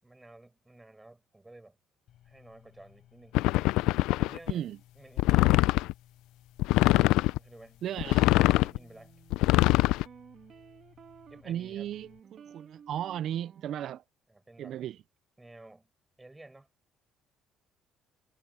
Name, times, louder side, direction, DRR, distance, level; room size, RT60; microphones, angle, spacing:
voice 1, 0.0-1.8 2.2-3.4 4.2-4.7 4.9-5.5 7.1-8.1 8.5-9.1 11.3-11.9 14.3-14.8 15.4-15.9 16.2-16.7, right 2 dB, 10° right, 6.1 m, -53 dB
sound 1, 2.1-12.2, left 12 dB, 60° left, 7.2 m, -60 dB
sound 2, 3.4-4.5 5.2-5.9 6.6-7.4 8.0-8.8 9.3-10.0, left 18 dB, 90° left, 0.4 m, -23 dB
voice 2, 4.5-4.8 7.8-8.3 11.5-14.0 14.6-15.0, right 11 dB, 55° right, 0.4 m, -35 dB
sound 3, 8.4-14.0, right 7 dB, 40° right, 2.3 m, -54 dB
cardioid pair, 135°, 0 cm